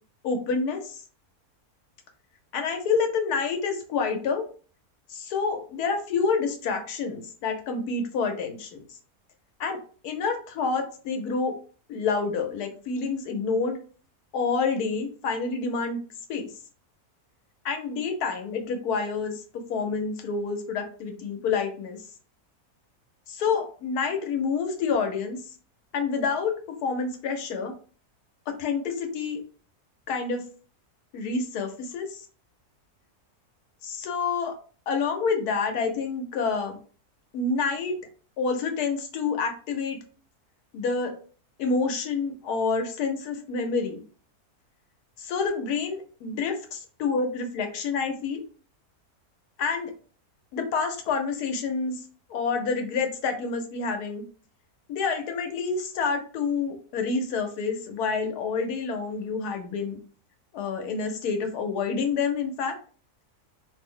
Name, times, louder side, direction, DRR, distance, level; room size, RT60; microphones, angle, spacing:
voice 1, 0.2-1.0 2.5-4.4 5.1-8.8 9.6-9.8 10.0-11.5 11.9-13.8 14.3-16.0 16.3-16.5 17.6-19.4 19.7-22.0 23.3-25.4 25.9-27.7 28.5-29.4 30.1-30.4 31.1-32.2 33.8-34.5 34.9-36.8 37.3-37.9 38.4-40.0 40.7-41.1 41.6-44.0 45.2-46.5 47.0-48.4 49.6-49.9 50.5-52.0 52.3-54.2 54.9-60.0 60.5-62.7, left 5 dB, 85° left, 4 dB, 1.2 m, -28 dB
3.0 x 2.0 x 3.6 m, 0.41 s
omnidirectional pair, 1.6 m